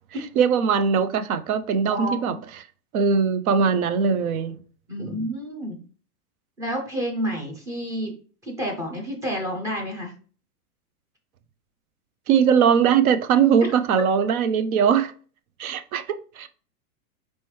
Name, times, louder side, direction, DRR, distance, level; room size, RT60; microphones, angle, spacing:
voice 1, 0.4-2.3 2.9-4.5 12.3-15.1 15.6-16.5, right 7 dB, 70° right, 0.6 m, -20 dB
voice 2, 1.9-2.4 4.9-5.8 6.6-8.1 8.4-10.1, equal, 10° right, 0.4 m, -29 dB
4.3 x 3.1 x 3.1 m
hypercardioid pair, 135°, 45 cm